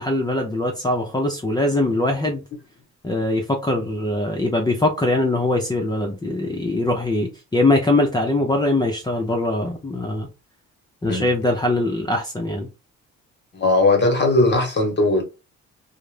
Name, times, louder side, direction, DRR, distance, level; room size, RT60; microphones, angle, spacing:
voice 1, 0.0-2.4 3.0-10.3 11.0-12.7, left 2 dB, 15° left, 0.4 m, -22 dB
voice 2, 13.5-15.2, left 2 dB, 35° left, 0.9 m, -18 dB
2.3 x 2.0 x 3.1 m
cardioid pair, 90°, 30 cm